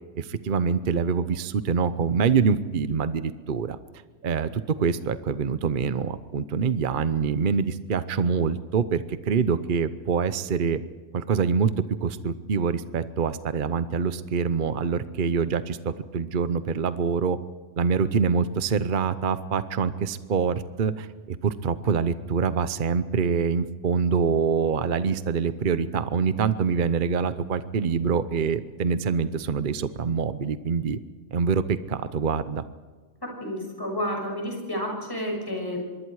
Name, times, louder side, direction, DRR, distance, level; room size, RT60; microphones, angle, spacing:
voice 1, 0.2-3.8 4.2-10.8 11.1-11.7 12.0-17.4 17.8-31.0 31.3-32.6, right 6 dB, 45° right, 13 dB, 0.9 m, -25 dB
voice 2, 33.4-35.8, equal, 15° left, 0 dB, 6.6 m, -30 dB
25.0 x 22.5 x 4.8 m, 1.4 s
omnidirectional pair, 1.3 m